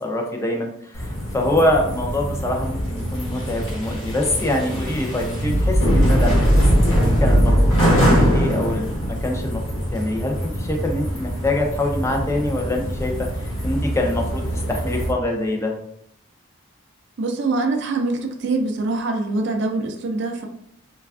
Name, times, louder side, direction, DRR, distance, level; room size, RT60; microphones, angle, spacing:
voice 1, 0.0-9.6 9.9-13.1 13.4-14.4 14.7-15.7, left 1 dB, 15° left, 1 dB, 0.4 m, -24 dB
sound 1, 0.9-15.1, equal, 70° left, 1.0 m, -21 dB
voice 2, 17.2-20.5, right 3 dB, 55° right, 3 dB, 0.4 m, -24 dB
3.2 x 2.3 x 2.3 m, 0.69 s
head